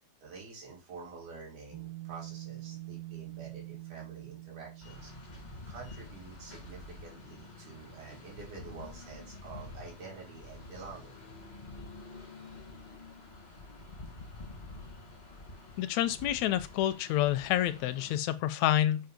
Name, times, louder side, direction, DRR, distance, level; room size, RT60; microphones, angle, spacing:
voice 1, 0.2-5.1 5.7-11.2, right 4 dB, 85° right, 4.2 m, -48 dB
sound 1, 1.7-8.4, right 17 dB, 60° right, 1.6 m, -47 dB
sound 2, 4.8-18.2, left 2 dB, 40° left, 0.6 m, -48 dB
voice 2, 15.8-19.0, left 13 dB, 80° left, 1.7 m, -28 dB
7.7 x 2.6 x 5.1 m
omnidirectional pair, 3.4 m